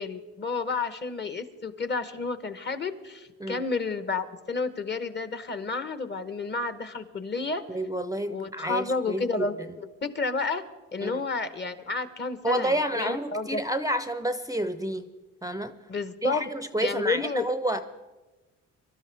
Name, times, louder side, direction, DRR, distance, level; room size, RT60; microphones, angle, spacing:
voice 1, 0.0-7.6 8.3-9.5 10.0-10.6 10.9-13.6 15.9-16.5 16.8-17.5, left 4 dB, 35° left, 11 dB, 1.1 m, -31 dB
voice 2, 7.7-9.7 11.0-11.2 12.4-15.0 15.4-15.8 16.2-17.8, right 1 dB, 10° right, 10 dB, 0.6 m, -29 dB
23.5 x 12.5 x 3.4 m, 1.2 s
cardioid pair, 90°, 30 cm